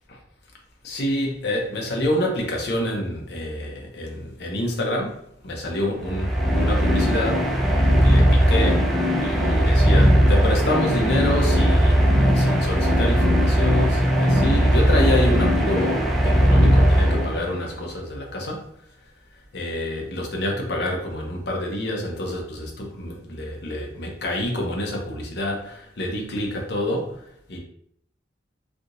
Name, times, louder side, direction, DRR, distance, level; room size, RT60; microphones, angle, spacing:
voice 1, 0.8-18.6 19.5-27.6, left 1 dB, 65° left, 0 dB, 0.8 m, -27 dB
sound 1, 5.9-17.7, equal, ahead, 0.5 m, -18 dB
3.3 x 2.8 x 2.6 m, 0.68 s
head